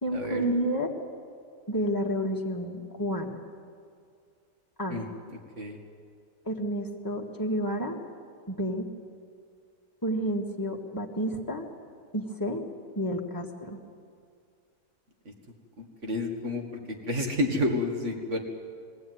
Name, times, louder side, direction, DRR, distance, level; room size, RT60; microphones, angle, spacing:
voice 1, 0.0-0.9 1.7-3.4 4.8-5.0 6.5-8.0 8.5-8.9 10.0-11.7 12.1-12.6 13.0-13.8, equal, 15° left, 0 dB, 1.8 m, -30 dB
voice 2, 15.8-18.4, left 1 dB, 50° right, 3 dB, 2.4 m, -30 dB
21.5 x 16.0 x 9.4 m, 2.2 s
omnidirectional pair, 1.6 m